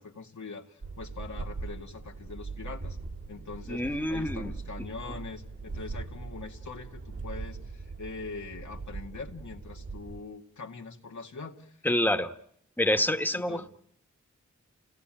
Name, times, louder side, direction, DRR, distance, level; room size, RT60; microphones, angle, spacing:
voice 1, 0.0-3.0 3.3-11.7 13.3-13.7, left 4 dB, 90° left, 2.0 m, -43 dB
sound 1, 0.8-10.2, right 3 dB, 50° right, 2.5 m, -40 dB
voice 2, 3.7-4.5 11.8-12.3 12.8-13.7, left 1 dB, 5° left, 1.5 m, -27 dB
29.0 x 17.5 x 9.0 m
wide cardioid pair, 55°, 29 cm